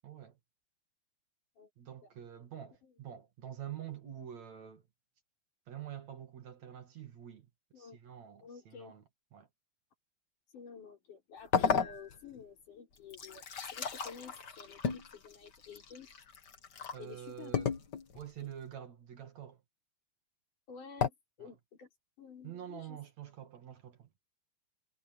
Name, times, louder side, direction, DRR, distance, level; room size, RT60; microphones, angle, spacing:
voice 1, 0.0-0.4 1.8-4.9 5.7-7.5 7.8-9.0 9.3-9.5 16.9-17.7 18.1-19.6 21.4-21.5 22.4-24.1, right 10 dB, 60° right, 3.4 m, -47 dB
voice 2, 8.4-8.9 10.5-16.1 17.0-17.8 20.7-21.9 22.2-23.0, left 6 dB, 70° left, 6.4 m, -51 dB
sound 1, 11.5-12.4 13.0-17.0 17.5-18.2 21.0-21.1, left 6 dB, 40° left, 1.8 m, -34 dB
omnidirectional pair, 3.7 m